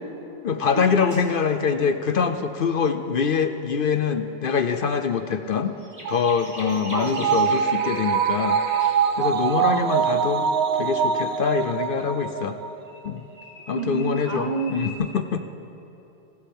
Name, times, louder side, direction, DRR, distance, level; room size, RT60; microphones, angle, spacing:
voice 1, 0.4-5.8 6.1-8.6 9.2-10.5 10.7-12.6 13.0-13.2 13.7-15.5, left 6 dB, 60° left, 8 dB, 0.8 m, -24 dB
sound 1, 0.9-1.3 5.4-8.9 12.8-14.9, equal, 15° right, 3.7 m, -41 dB
sound 2, 6.0-12.7 13.1-13.2, right 7 dB, 80° right, 0.9 m, -24 dB
voice 2, 6.9-7.4 9.6-9.9 13.7-14.8, right 4 dB, 40° right, 4 dB, 1.3 m, -29 dB
28.5 x 12.0 x 3.5 m, 3.0 s
omnidirectional pair, 1.1 m